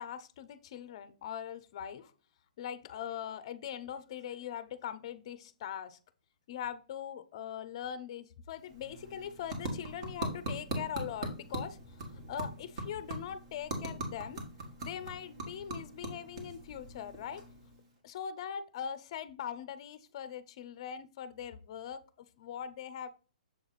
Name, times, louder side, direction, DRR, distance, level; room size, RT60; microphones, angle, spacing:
voice 1, 0.0-2.1 2.6-6.0 6.5-14.4 14.8-17.4 18.0-23.1, left 9 dB, 40° left, 13 dB, 0.6 m, -41 dB
sound 1, 8.5-18.0, right 1 dB, 40° right, 1.7 m, -41 dB
7.1 x 3.4 x 4.0 m, 0.39 s
hypercardioid pair, 160°, 4 cm